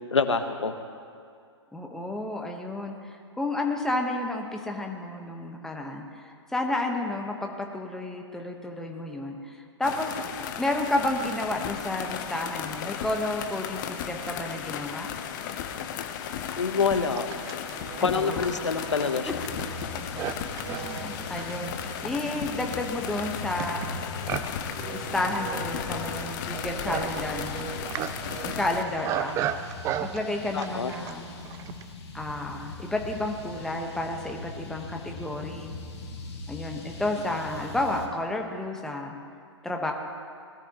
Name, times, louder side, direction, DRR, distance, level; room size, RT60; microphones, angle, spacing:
voice 1, 0.1-0.7 16.6-17.3 18.0-19.3 30.5-30.9, left 5 dB, 80° left, 9 dB, 1.1 m, -26 dB
voice 2, 1.7-10.1 10.6-15.1 18.0-18.5 19.3-19.4 20.6-24.0 24.9-27.7 28.4-29.4 30.0-31.3 32.1-35.7 36.5-39.1 39.6-39.9, left 2 dB, 5° left, 2 dB, 1.2 m, -31 dB
sound 1, 9.8-28.8, left 8 dB, 40° left, 0.9 m, -35 dB
Livestock farm animals working animals, 15.2-15.3 16.0-31.9, right 11 dB, 20° right, 0.4 m, -37 dB
sound 2, 19.3-38.1, left 3 dB, 60° left, 2.3 m, -41 dB
20.5 x 13.0 x 3.0 m, 2.3 s
figure-of-eight pair, 120°, 15 cm